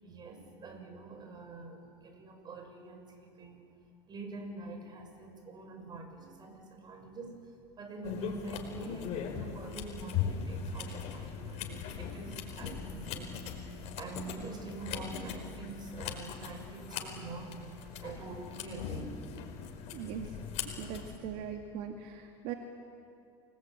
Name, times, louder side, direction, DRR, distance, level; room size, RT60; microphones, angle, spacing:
voice 1, 0.0-3.7 4.1-7.5 7.8-13.5 14.0-19.2, right 3 dB, 30° right, 5 dB, 6.4 m, -45 dB
sound 1, 8.0-21.2, left 7 dB, 55° left, 4.7 m, -40 dB
voice 2, 19.9-20.4 20.8-22.5, right 8 dB, 65° right, 3 dB, 2.2 m, -40 dB
28.5 x 19.5 x 9.0 m, 2.5 s
supercardioid pair, 110°, 14 cm